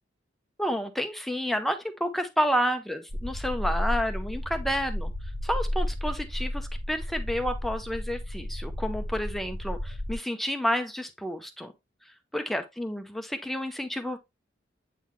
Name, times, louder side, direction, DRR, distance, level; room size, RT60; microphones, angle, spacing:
voice 1, 0.6-5.1 5.4-11.7 12.3-14.2, equal, ahead, 0.6 m, -30 dB
sound 1, 3.1-10.1, left 1 dB, 65° right, 1.2 m, -32 dB
8.3 x 3.9 x 3.0 m
head